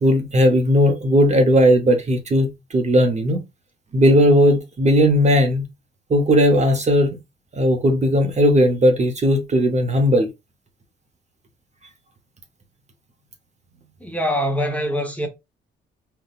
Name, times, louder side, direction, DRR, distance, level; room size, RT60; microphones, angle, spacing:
voice 1, 0.0-3.4 3.9-5.6 6.1-7.2 7.5-10.3, equal, 35° right, 0.8 m, -17 dB
voice 2, 14.0-15.3, equal, 5° left, 0.9 m, -23 dB
3.8 x 2.2 x 2.4 m
cardioid pair, 90°, 20 cm